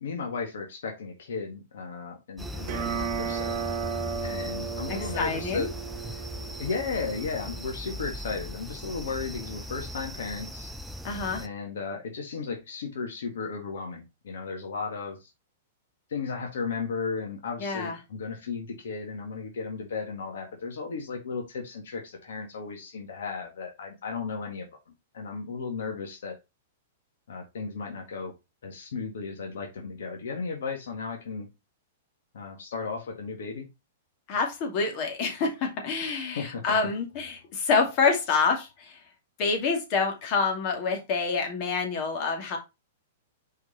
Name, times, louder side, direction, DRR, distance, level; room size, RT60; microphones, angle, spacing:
voice 1, 0.0-3.6 4.2-5.7 6.6-10.7 11.4-15.3 16.1-24.7 25.1-26.3 27.3-28.3 28.6-31.5 32.3-33.7 36.3-36.6, left 4 dB, 75° left, 2 dB, 1.6 m, -35 dB
sound 1, 2.4-11.5, equal, 5° right, 0.6 m, -38 dB
sound 2, 2.6-7.6, right 6 dB, 45° right, 1.1 m, -35 dB
voice 2, 4.9-5.7 11.0-11.4 17.6-18.0 34.3-39.0 39.4-42.6, left 4 dB, 45° left, 3 dB, 2.4 m, -27 dB
5.1 x 4.7 x 4.2 m, 0.24 s
hypercardioid pair, 120°, 0 cm